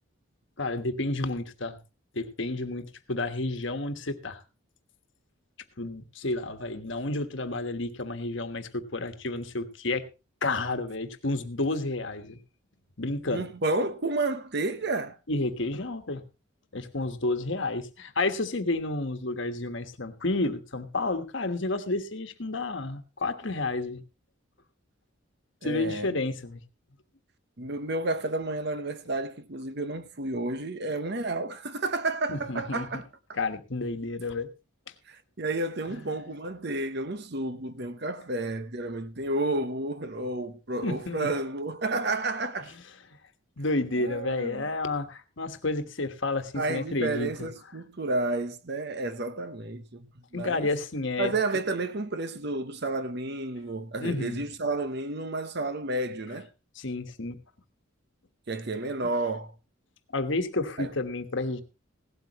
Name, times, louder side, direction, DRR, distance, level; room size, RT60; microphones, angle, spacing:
voice 1, 0.6-1.8 2.1-4.4 5.8-10.0 10.4-12.4 13.0-13.5 15.3-16.2 16.7-24.0 25.6-26.6 32.3-32.9 33.4-34.5 35.9-36.0 40.8-41.3 43.6-47.3 50.3-51.3 54.0-54.4 56.7-57.4 60.1-61.6, left 2 dB, 60° left, 1.3 m, -30 dB
voice 2, 13.3-15.2 25.6-26.2 27.6-33.4 35.1-42.8 44.0-44.6 46.5-50.7 51.2-56.5 58.5-59.5 60.8-60.9, right 2 dB, 50° right, 0.9 m, -31 dB
17.0 x 12.5 x 3.0 m
head